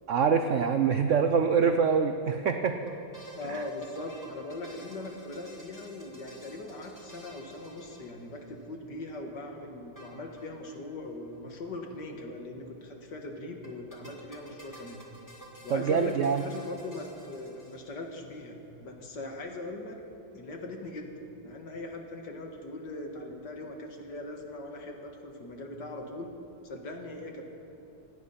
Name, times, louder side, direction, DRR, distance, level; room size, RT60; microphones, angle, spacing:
voice 1, 0.1-2.9 3.5-3.6 15.7-16.4, right 6 dB, 75° right, 7 dB, 0.6 m, -25 dB
sound 1, 2.9-8.6 10.0-10.8 11.1-11.2 11.3-11.4 13.6-18.1, equal, 10° left, 2.5 m, -51 dB
voice 2, 3.3-15.0 15.6-20.0 20.3-21.1 21.4-26.3 26.6-27.5, left 2 dB, 60° left, 2 dB, 2.2 m, -40 dB
26.0 x 9.4 x 5.8 m, 2.8 s
omnidirectional pair, 2.1 m